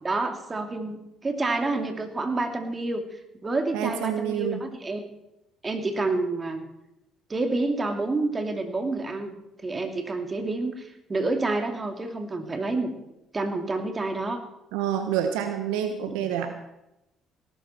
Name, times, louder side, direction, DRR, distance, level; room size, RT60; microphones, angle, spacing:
voice 1, 0.0-3.0 3.4-5.0 5.6-6.6 7.3-9.3 9.6-12.9 13.3-14.4 16.1-16.2, right 2 dB, 30° right, 5 dB, 2.8 m, -28 dB
voice 2, 3.7-4.7 14.7-16.6, right 9 dB, 80° right, 7 dB, 1.1 m, -28 dB
18.0 x 12.5 x 4.5 m, 0.89 s
hypercardioid pair, 60°, 0 cm